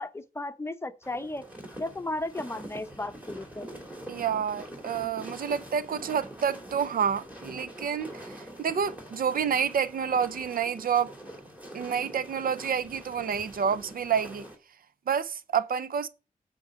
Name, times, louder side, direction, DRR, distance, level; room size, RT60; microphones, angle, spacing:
voice 1, 0.0-1.4 1.8-3.7, left 2 dB, 20° left, 0.7 m, -35 dB
sound 1, 1.0-14.5, right 1 dB, 10° right, 2.6 m, -44 dB
voice 2, 4.1-11.1 11.7-14.4 15.1-16.1, right 7 dB, 80° right, 0.6 m, -29 dB
8.9 x 3.8 x 6.2 m
wide cardioid pair, 135°, 15 cm